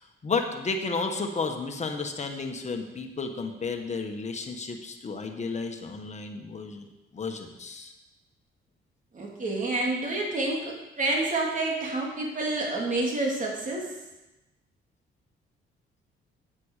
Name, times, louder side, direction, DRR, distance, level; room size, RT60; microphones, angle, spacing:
voice 1, 0.0-6.9 7.1-7.9, left 4 dB, 35° left, 4 dB, 1.6 m, -32 dB
voice 2, 9.1-13.9, right 2 dB, 40° right, -2 dB, 3.2 m, -28 dB
8.9 x 8.3 x 6.7 m, 0.99 s
cardioid pair, 90°, 20 cm